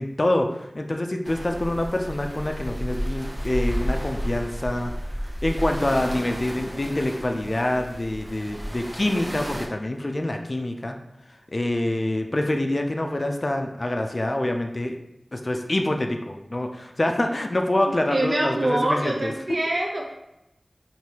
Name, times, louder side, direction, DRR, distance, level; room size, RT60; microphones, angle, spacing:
voice 1, 0.0-4.9 5.2-11.0 11.5-15.0 15.3-19.3, left 1 dB, 45° left, 4 dB, 0.4 m, -26 dB
sound 1, 1.2-9.7, equal, 30° right, 0.8 m, -32 dB
voice 2, 18.1-20.1, right 1 dB, 60° right, -2 dB, 0.5 m, -25 dB
4.7 x 2.6 x 2.9 m, 0.89 s
wide cardioid pair, 50°, 0 cm